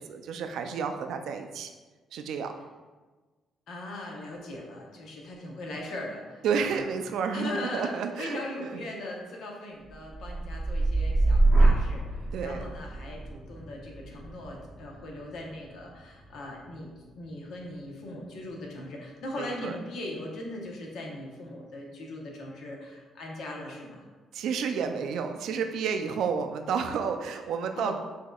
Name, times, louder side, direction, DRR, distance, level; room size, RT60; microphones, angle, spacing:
voice 1, 0.0-1.7 2.1-2.5 6.4-8.7 12.3-12.6 19.4-19.7 24.3-27.9, right 6 dB, 80° right, 6 dB, 0.3 m, -31 dB
voice 2, 3.7-6.9 7.3-24.1 27.7-28.0, left 1 dB, 75° left, 0 dB, 0.9 m, -39 dB
sound 1, 9.9-17.9 18.4-18.9, right 2 dB, 5° right, 0.8 m, -27 dB
6.0 x 2.7 x 2.3 m, 1.3 s
cardioid pair, 90°, 0 cm